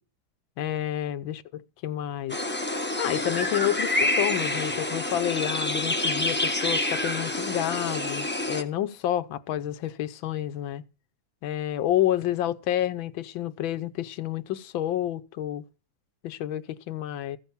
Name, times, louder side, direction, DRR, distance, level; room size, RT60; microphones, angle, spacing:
voice 1, 0.6-2.4 3.0-10.8 11.4-15.6 16.2-17.4, left 12 dB, 75° left, 1.5 m, -29 dB
sound 1, 2.3-8.6, left 1 dB, 10° left, 0.7 m, -27 dB
15.0 x 7.0 x 7.1 m
omnidirectional pair, 2.2 m